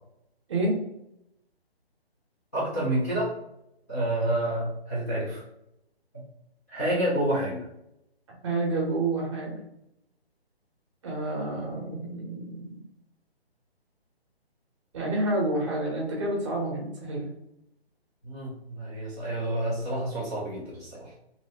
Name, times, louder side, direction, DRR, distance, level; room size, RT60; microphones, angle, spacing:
voice 1, 2.5-3.4 3.9-5.4 6.7-7.7 18.2-21.1, right 1 dB, 15° left, -11 dB, 0.4 m, -29 dB
voice 2, 8.4-9.6 11.0-12.8 14.9-17.3, right 2 dB, 30° right, -2 dB, 0.8 m, -29 dB
2.7 x 2.6 x 3.2 m, 0.82 s
hypercardioid pair, 155°, 32 cm